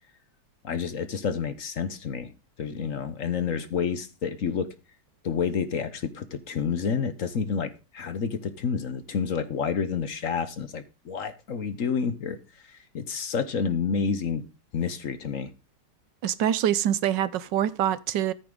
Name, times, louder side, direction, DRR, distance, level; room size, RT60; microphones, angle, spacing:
voice 1, 0.6-2.3 2.6-4.7 5.2-12.4 12.7-14.4 14.7-15.5, left 6 dB, 55° left, 1.2 m, -29 dB
voice 2, 16.2-18.3, right 10 dB, 80° right, 1.4 m, -25 dB
14.0 x 9.4 x 3.8 m
omnidirectional pair, 1.9 m